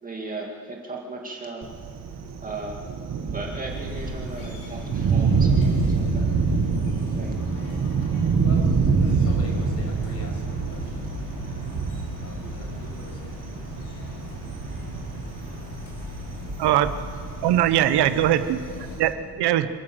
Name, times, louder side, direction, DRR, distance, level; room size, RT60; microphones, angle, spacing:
voice 1, 0.0-1.7 2.4-2.8 3.3-6.3 7.2-7.7, right 3 dB, 20° right, -1 dB, 2.3 m, -36 dB
Thunder, 1.6-19.1, right 5 dB, 40° right, 1.8 m, -26 dB
sound 1, 3.3-4.3 4.7-6.5 6.8-8.5 8.8-11.2, right 5 dB, 5° left, 2.7 m, -42 dB
sound 2, 3.7-19.0, left 2 dB, 80° left, 6.0 m, -39 dB
voice 2, 8.9-11.9 12.2-14.2 18.6-19.0 19.2-19.3, left 1 dB, 40° left, -1 dB, 6.3 m, -43 dB
voice 3, 16.6-16.9 17.4-18.6 19.0-19.1 19.4-19.7, right 12 dB, 85° right, 11 dB, 1.0 m, -20 dB
27.0 x 12.5 x 7.8 m, 2.1 s
cardioid pair, 155°, 39 cm